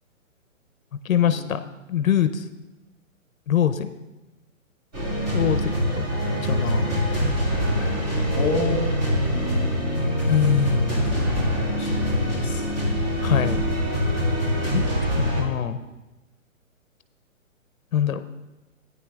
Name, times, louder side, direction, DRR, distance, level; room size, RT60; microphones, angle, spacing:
voice 1, 1.0-1.6 1.9-2.4 3.5-3.9 5.3-6.0 6.4-7.0 10.3-11.0 13.2-13.6 14.7-15.8 17.9-18.2, left 9 dB, 75° left, 11 dB, 0.7 m, -23 dB
sound 1, 4.9-15.4, equal, 30° right, 2.2 m, -24 dB
voice 2, 8.3-11.1 11.8-12.7, left 2 dB, 10° left, 2 dB, 1.4 m, -32 dB
14.5 x 9.6 x 2.3 m, 1.1 s
hypercardioid pair, 165°, 41 cm